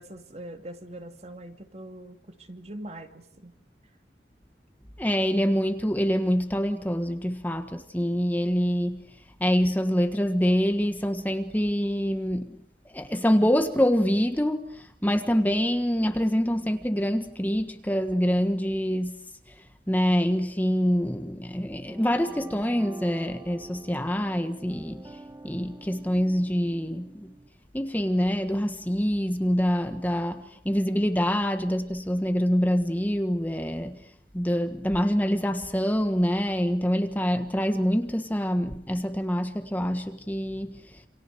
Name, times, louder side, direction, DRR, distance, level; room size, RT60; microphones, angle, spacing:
voice 1, 0.0-3.6, right 1 dB, 40° right, 2.6 m, -42 dB
voice 2, 5.0-9.0 9.4-12.6 12.9-27.3 27.7-34.1 34.3-41.0, equal, 10° left, 1.5 m, -26 dB
sound 1, 21.9-27.5, right 2 dB, 15° right, 1.4 m, -46 dB
28.5 x 28.0 x 6.6 m
head